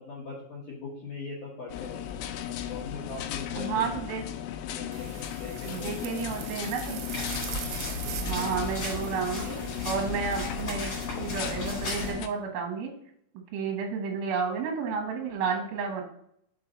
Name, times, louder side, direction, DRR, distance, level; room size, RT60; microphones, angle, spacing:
voice 1, 0.0-2.3 2.7-3.8 4.6-6.2 8.2-8.6, left 4 dB, 65° left, -5 dB, 2.0 m, -41 dB
sound 1, 1.7-12.3, left 10 dB, 85° left, 2.9 m, -36 dB
voice 2, 3.5-4.2 5.7-7.0 8.2-9.6 9.8-10.9 11.2-12.9 13.5-16.0, right 5 dB, 75° right, 2 dB, 2.2 m, -31 dB
sound 2, 4.9-9.9, right 11 dB, 90° right, 3.2 m, -42 dB
sound 3, 7.1-12.1, left 1 dB, 35° left, 3.0 m, -36 dB
6.5 x 4.4 x 3.9 m, 0.69 s
omnidirectional pair, 5.7 m